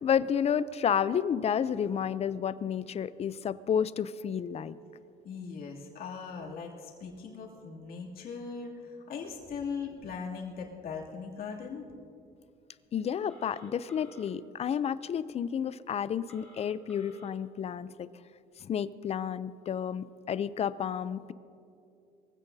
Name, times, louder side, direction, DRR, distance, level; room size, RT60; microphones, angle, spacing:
voice 1, 0.0-4.7 12.9-18.1 18.6-21.3, left 8 dB, 40° left, 16 dB, 0.5 m, -31 dB
voice 2, 5.2-11.9, left 5 dB, 65° left, -2 dB, 2.7 m, -39 dB
Telephone, 13.3-14.3 16.3-17.3, equal, 5° left, 3.4 m, -53 dB
22.5 x 15.5 x 2.8 m, 2.5 s
cardioid pair, 110°, 17 cm